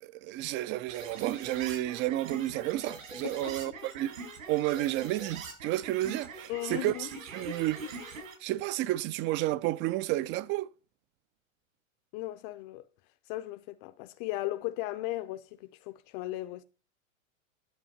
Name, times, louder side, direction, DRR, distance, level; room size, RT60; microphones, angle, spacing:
voice 1, 0.0-4.2 4.5-7.8 8.4-10.7, right 16 dB, 30° right, 0.5 m, -31 dB
sound 1, 0.9-8.3, right 3 dB, 75° right, 5.3 m, -43 dB
voice 2, 3.2-3.8 6.5-7.1 12.1-12.8 13.3-16.6, left 16 dB, 40° left, 0.7 m, -37 dB
10.5 x 6.9 x 5.8 m
hypercardioid pair, 115°, 41 cm